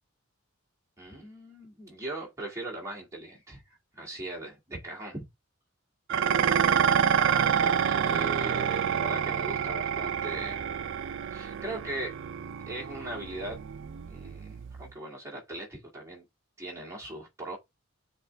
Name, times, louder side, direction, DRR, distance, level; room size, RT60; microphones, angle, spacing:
voice 1, 1.0-3.6 3.9-5.2 7.6-10.6 11.3-12.2 12.7-13.6 14.0-16.2 16.6-17.6, right 2 dB, 15° right, 2.3 m, -39 dB
Dishes pots and pans, 6.1-14.9, right 8 dB, 65° right, 0.4 m, -28 dB
7.8 x 3.6 x 3.4 m
head